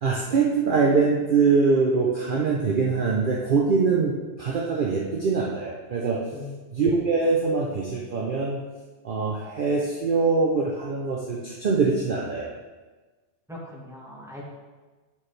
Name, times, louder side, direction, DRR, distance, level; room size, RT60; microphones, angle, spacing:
voice 1, 0.0-4.1 4.4-6.2 6.7-8.6 9.0-12.5, right 4 dB, 50° right, -2 dB, 0.8 m, -23 dB
voice 2, 6.3-6.7 13.5-14.4, left 2 dB, 5° right, -6 dB, 1.6 m, -40 dB
9.4 x 4.5 x 3.2 m, 1.3 s
omnidirectional pair, 1.2 m